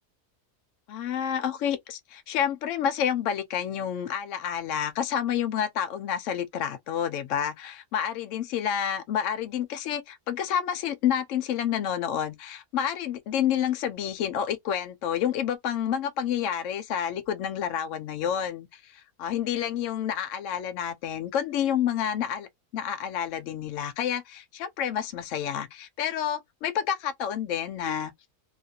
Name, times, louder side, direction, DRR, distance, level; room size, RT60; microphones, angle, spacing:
voice 1, 0.9-22.5 22.7-28.1, left 9 dB, 65° left, 0.8 m, -29 dB
2.8 x 2.4 x 2.7 m
omnidirectional pair, 1.6 m